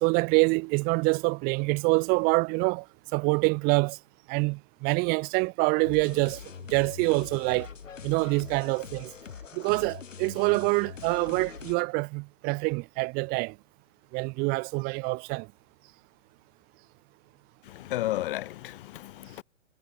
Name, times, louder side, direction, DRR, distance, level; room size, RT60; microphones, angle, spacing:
voice 1, 0.0-2.8 3.1-4.0 4.3-6.4 6.7-7.7 8.0-9.1 9.5-13.5 14.1-15.5, right 29 dB, 25° right, 0.9 m, -26 dB
sound 1, 5.8-11.8, left 7 dB, 75° left, 4.9 m, -43 dB
voice 2, 17.6-19.4, left 15 dB, 45° left, 1.6 m, -33 dB
hypercardioid pair, 135°, 38 cm